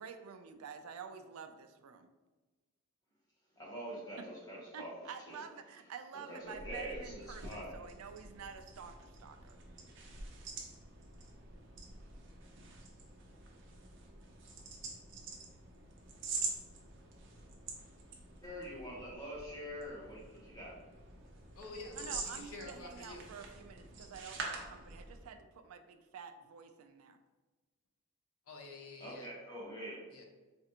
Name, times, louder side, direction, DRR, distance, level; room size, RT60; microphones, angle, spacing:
voice 1, 0.0-2.1 4.2-4.3 4.7-9.6 22.0-27.2, right 6 dB, 90° right, 8 dB, 0.4 m, -49 dB
voice 2, 3.6-4.9 5.3-5.4 6.3-7.8 18.4-20.7 29.0-30.1, equal, 15° left, -5 dB, 1.0 m, -45 dB
sound 1, 6.4-25.4, right 3 dB, 55° right, 0.7 m, -46 dB
voice 3, 21.6-23.3 28.5-29.6 30.1-30.3, left 2 dB, 90° left, 2 dB, 0.7 m, -49 dB
4.4 x 2.4 x 2.8 m, 1.3 s
head